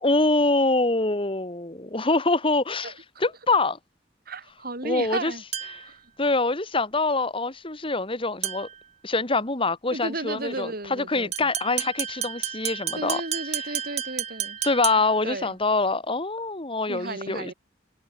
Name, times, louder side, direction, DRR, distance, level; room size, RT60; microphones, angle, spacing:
voice 1, 0.0-2.9 3.2-3.8 4.8-5.3 5.7-5.8 6.2-8.7 9.0-13.2 14.6-17.5, left 3 dB, 30° left, 2.6 m, -25 dB
voice 2, 2.8-3.3 4.3-5.4 5.8-6.0 9.9-11.5 13.0-14.6 15.2-15.6 16.9-17.5, right 2 dB, 55° right, 6.4 m, -34 dB
sound 1, 5.5-6.0 8.4-8.8 11.3-15.3, right 9 dB, 35° right, 6.1 m, -32 dB
head